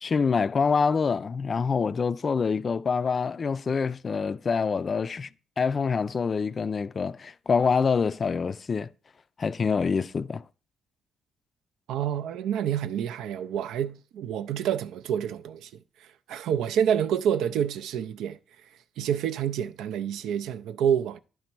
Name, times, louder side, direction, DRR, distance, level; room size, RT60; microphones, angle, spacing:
voice 1, 0.0-5.3 5.6-8.9 9.4-10.4, left 5 dB, 40° left, 0.3 m, -26 dB
voice 2, 11.9-15.7 16.3-18.4 19.0-21.2, right 9 dB, 85° right, 0.4 m, -28 dB
10.5 x 4.0 x 4.5 m
cardioid pair, 90°, 0 cm